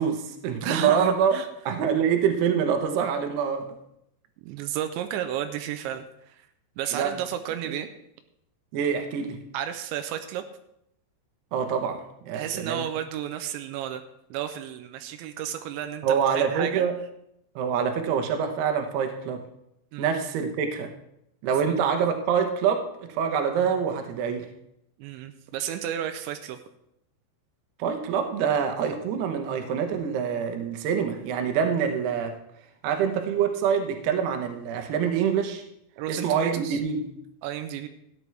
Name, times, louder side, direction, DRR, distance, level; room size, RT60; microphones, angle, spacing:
voice 1, 0.0-3.7 6.9-7.1 7.6-7.7 8.7-9.4 11.5-12.8 16.0-17.0 17.6-19.4 20.0-20.9 21.4-24.5 27.8-32.3 32.8-35.6 36.1-37.1, right 7 dB, 75° right, 5 dB, 2.9 m, -25 dB
voice 2, 0.6-1.5 4.4-6.4 6.8-7.9 9.5-10.4 12.3-14.0 14.3-16.9 19.9-20.1 21.6-21.8 25.0-26.6 36.0-36.8 37.4-37.9, right 10 dB, 90° right, 8 dB, 3.0 m, -32 dB
14.0 x 9.6 x 3.3 m, 0.78 s
omnidirectional pair, 5.1 m